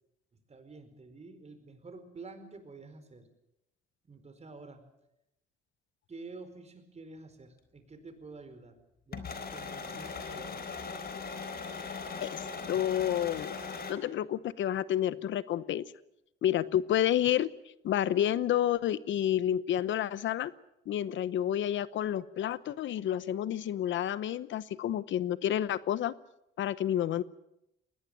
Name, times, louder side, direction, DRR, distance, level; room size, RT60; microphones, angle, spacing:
voice 1, 0.5-3.3 4.0-4.8 6.1-8.8 9.1-10.8, right 3 dB, 35° right, 9 dB, 4.7 m, -49 dB
sound 1, 9.1-13.9, left 5 dB, 50° left, 4.1 m, -39 dB
voice 2, 12.2-13.6 13.9-15.9 16.4-17.5 17.8-20.5 20.9-26.1 26.6-27.2, left 11 dB, 70° left, 17 dB, 0.9 m, -30 dB
20.5 x 19.0 x 8.9 m, 0.84 s
cardioid pair, 90°, 20 cm